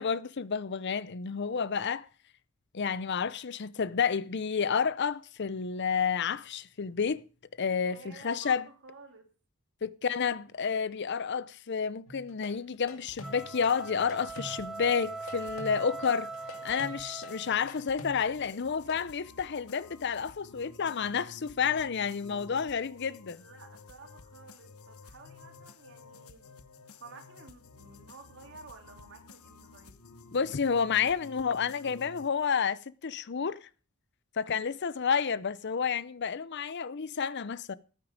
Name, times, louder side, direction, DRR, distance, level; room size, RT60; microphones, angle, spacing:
voice 1, 0.0-2.1 2.7-7.2 7.6-8.6 9.8-16.3 16.6-23.4 30.3-33.7 34.4-37.7, left 6 dB, 50° left, 0.6 m, -30 dB
voice 2, 7.8-9.3 23.4-26.5 27.0-30.0 34.4-34.7, right 4 dB, 55° right, 2.5 m, -52 dB
sound 1, 12.1-19.1, left 1 dB, 70° left, 2.3 m, -45 dB
sound 2, 13.1-32.3, left 4 dB, 85° left, 1.0 m, -53 dB
sound 3, 13.1-17.7, right 3 dB, ahead, 0.8 m, -41 dB
14.0 x 9.4 x 5.1 m
head